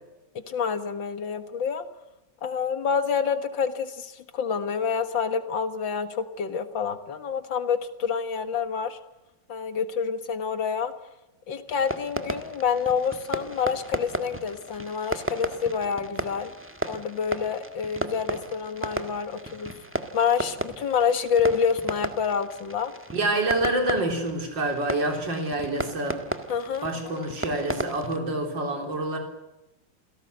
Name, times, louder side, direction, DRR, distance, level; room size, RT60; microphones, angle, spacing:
voice 1, 0.5-1.9 2.4-9.0 9.5-10.9 11.5-16.5 16.9-19.7 20.1-22.9 26.5-27.3, left 6 dB, 80° left, 10 dB, 2.3 m, -27 dB
Fireworks, 11.7-28.2, right 1 dB, 5° right, 1.4 m, -35 dB
voice 2, 23.1-26.2 26.8-29.2, right 2 dB, 75° right, 3 dB, 4.2 m, -27 dB
28.0 x 17.5 x 8.0 m, 1.0 s
omnidirectional pair, 2.0 m